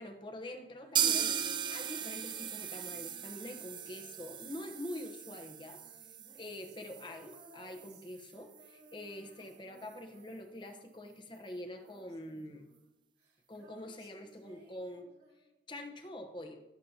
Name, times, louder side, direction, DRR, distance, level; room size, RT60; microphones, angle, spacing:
voice 1, 0.0-1.4 1.7-5.8 6.3-12.7 13.5-16.6, left 1 dB, 25° left, 5 dB, 1.0 m, -45 dB
Female singing, 0.6-11.0 11.2-15.7, right 1 dB, 80° right, 2.6 m, -62 dB
sound 1, 1.0-8.7 9.0-9.1 9.4-9.5 9.9-10.0, right 8 dB, 25° right, 0.4 m, -37 dB
16.0 x 7.4 x 2.8 m, 0.99 s
head